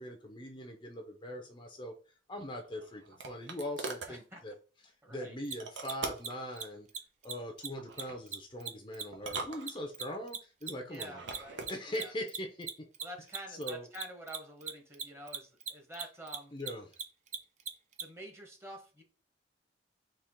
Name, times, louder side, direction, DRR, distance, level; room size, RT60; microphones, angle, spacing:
voice 1, 0.0-2.0 2.3-4.5 4.8-6.9 7.2-11.3 11.7-12.7 13.5-13.9 16.5-17.0, left 1 dB, 25° left, 3 dB, 0.6 m, -41 dB
sound 1, 2.4-4.2 5.6-6.4 7.8-8.2 9.1-10.2 11.0-11.8, right 3 dB, 80° right, 0.9 m, -42 dB
voice 2, 4.1-4.4 5.0-5.4 10.9-12.1 13.0-16.6 18.0-19.0, equal, 15° right, 2 dB, 1.0 m, -48 dB
Mechanisms, 5.4-5.5 5.8-5.9 6.2-6.3 6.5-6.6 6.9-7.0 7.2-7.3 7.6-7.7 8.0-10.7 10.9-18.0, right 6 dB, 40° right, 0.5 m, -38 dB
4.4 x 3.0 x 3.6 m, 0.37 s
head